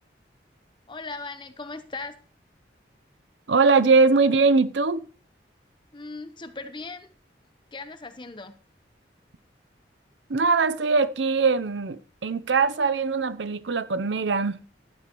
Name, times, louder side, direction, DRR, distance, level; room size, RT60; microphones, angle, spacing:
voice 1, 0.9-2.2 5.9-7.1 7.7-8.5, left 3 dB, 25° left, 1.0 m, -38 dB
voice 2, 3.5-5.1 10.3-14.6, right 4 dB, 85° right, 0.7 m, -21 dB
15.5 x 12.5 x 3.1 m
head